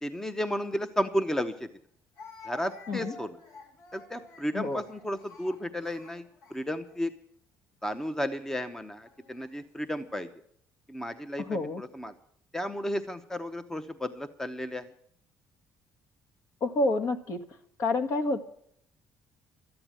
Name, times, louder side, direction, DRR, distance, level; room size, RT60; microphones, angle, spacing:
voice 1, 0.0-1.7 2.4-3.3 3.9-6.2 6.5-7.1 7.8-10.3 10.9-12.1 12.5-14.9, equal, 10° left, 10 dB, 0.9 m, -33 dB
Speech, 1.0-1.1 2.2-7.0 7.8-8.1 9.0-9.6, left 3 dB, 70° left, 2.9 m, -50 dB
voice 2, 11.4-11.8 16.6-17.4 17.8-18.4, left 2 dB, 55° left, 5 dB, 1.7 m, -28 dB
13.5 x 9.8 x 8.9 m, 0.67 s
cardioid pair, 120°, 6 cm